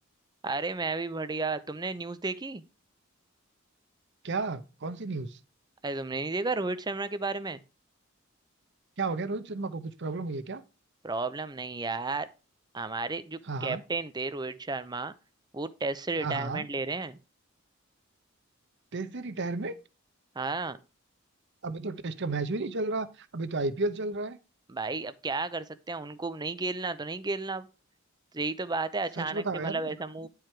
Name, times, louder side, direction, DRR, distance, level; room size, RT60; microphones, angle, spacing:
voice 1, 0.4-2.6 5.8-7.6 11.0-12.3 12.7-15.1 15.5-17.2 20.4-20.8 24.7-27.7 28.3-30.3, right 3 dB, 20° right, 0.6 m, -33 dB
voice 2, 4.2-5.4 9.0-10.6 13.5-13.8 16.2-16.7 18.9-19.7 21.6-24.4 29.2-29.9, right 3 dB, 60° right, 0.8 m, -33 dB
10.5 x 4.8 x 4.6 m
head